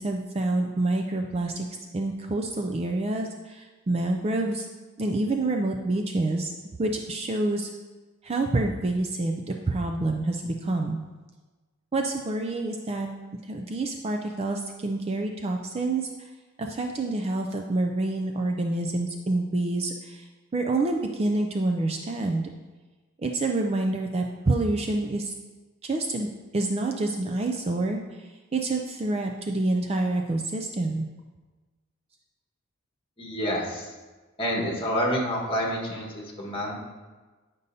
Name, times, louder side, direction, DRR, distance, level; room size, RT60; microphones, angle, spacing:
voice 1, 0.0-1.7 1.9-4.7 5.0-6.5 6.8-7.7 8.2-11.0 11.9-13.1 13.5-16.1 16.6-20.2 20.5-22.5 23.2-25.3 25.8-31.1, right 2 dB, 30° right, 3 dB, 0.4 m, -27 dB
voice 2, 33.2-33.9 34.4-36.7, equal, 25° left, -2 dB, 1.5 m, -28 dB
9.6 x 5.3 x 2.7 m, 1.3 s
head